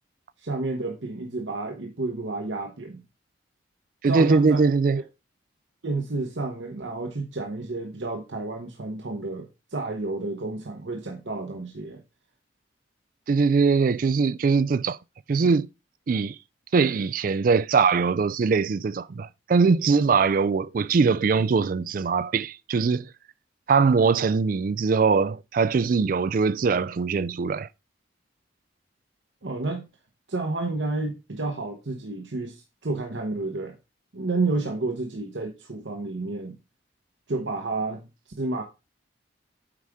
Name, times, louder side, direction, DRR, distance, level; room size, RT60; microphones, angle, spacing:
voice 1, 0.4-3.0 4.0-4.7 5.8-12.0 29.4-29.9 30.3-33.8 34.1-36.6 37.3-38.1 38.4-38.6, right 3 dB, 70° right, 1.0 m, -30 dB
voice 2, 4.0-5.0 13.3-15.0 15.3-15.7 16.1-16.4 16.7-23.1 23.7-27.7, right 5 dB, 45° right, 0.3 m, -22 dB
8.4 x 4.9 x 3.5 m
head